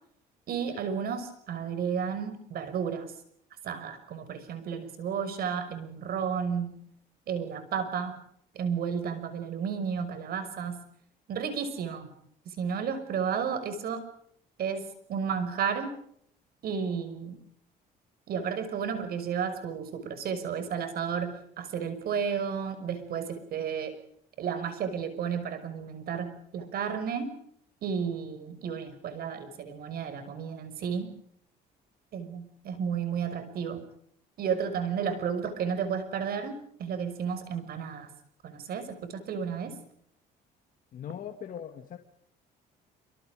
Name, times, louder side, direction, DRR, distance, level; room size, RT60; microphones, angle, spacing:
voice 1, 0.5-3.1 3.6-6.8 7.3-8.2 8.5-10.8 11.3-12.1 12.5-14.0 14.6-16.0 16.6-17.4 18.3-23.9 24.4-27.4 27.8-31.1 32.1-33.8 34.4-38.1 38.4-39.7, right 7 dB, 65° right, 11 dB, 6.0 m, -32 dB
voice 2, 40.9-42.0, left 9 dB, 55° left, 4 dB, 2.4 m, -40 dB
27.5 x 25.5 x 5.1 m, 0.68 s
cardioid pair, 110°, 17 cm